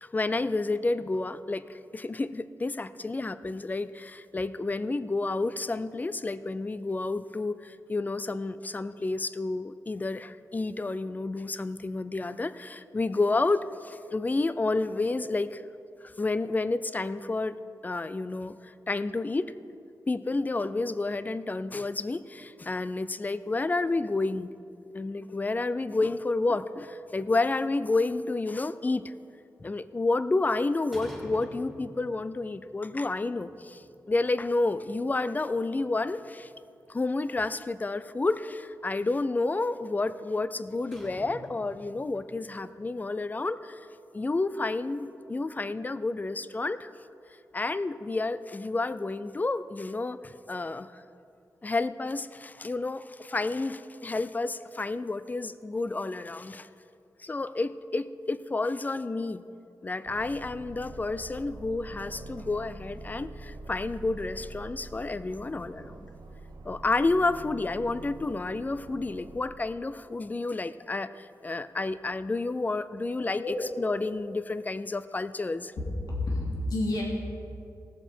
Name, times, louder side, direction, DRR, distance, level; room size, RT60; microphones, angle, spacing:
voice 1, 0.0-15.6 16.0-17.6 17.8-19.5 20.1-24.5 24.9-29.1 29.6-36.5 36.9-43.8 44.1-46.9 47.5-51.0 51.6-56.7 57.2-59.4 59.8-66.1 66.6-75.7, left 3 dB, 25° left, 13 dB, 0.4 m, -30 dB
sound 1, 27.0-28.4 30.9-32.6 32.8-32.9 33.5-34.5 34.7-34.8 35.4-35.5 35.8-37.2 38.8-38.9 40.6-42.4, equal, ahead, 2.7 m, -47 dB
Aircraft, 60.0-69.4, right 2 dB, 85° right, 1.0 m, -45 dB
voice 2, 73.4-73.7 75.8-77.0, left 1 dB, 90° left, -5 dB, 2.8 m, -30 dB
18.5 x 7.2 x 4.4 m, 2.6 s
wide cardioid pair, 105°, 7 cm